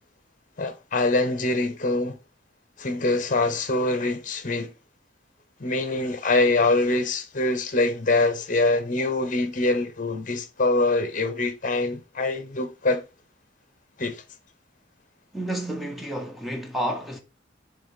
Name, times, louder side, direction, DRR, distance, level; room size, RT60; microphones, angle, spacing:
voice 1, 0.6-2.2 2.8-4.7 5.6-13.0 14.0-14.2, left 2 dB, 45° left, 0.9 m, -24 dB
voice 2, 15.3-17.2, right 1 dB, ahead, 0.7 m, -30 dB
6.9 x 3.2 x 4.2 m
head